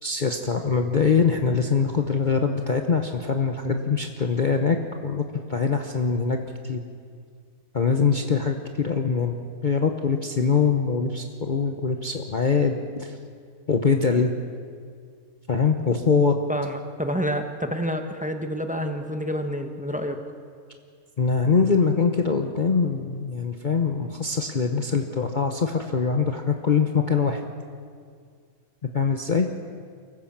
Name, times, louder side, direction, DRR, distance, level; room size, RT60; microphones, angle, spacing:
voice 1, 0.0-4.8 5.0-5.2 5.5-6.8 7.7-9.4 9.6-13.2 13.7-14.3 15.5-16.3 21.2-27.4 28.9-29.5, left 5 dB, 35° left, 4 dB, 0.9 m, -23 dB
voice 2, 16.5-20.2, equal, 5° right, 5 dB, 1.0 m, -28 dB
24.0 x 15.0 x 7.3 m, 2.1 s
omnidirectional pair, 1.6 m